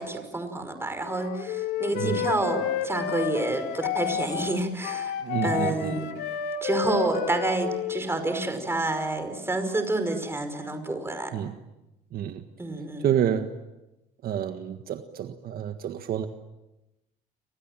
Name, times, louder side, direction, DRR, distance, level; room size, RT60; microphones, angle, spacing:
voice 1, 0.0-5.1 5.4-6.1 6.6-11.3 12.6-13.1, right 2 dB, 15° right, 8 dB, 5.4 m, -28 dB
Wind instrument woodwind instrument, 1.0-8.4, left 10 dB, 85° left, 2.4 m, -31 dB
voice 2, 1.9-2.3 5.2-6.0 11.3-11.5 12.1-12.4 13.0-13.5 14.2-16.3, right 9 dB, 60° right, 7 dB, 1.7 m, -28 dB
30.0 x 26.5 x 7.6 m, 0.97 s
cardioid pair, 110°, 17 cm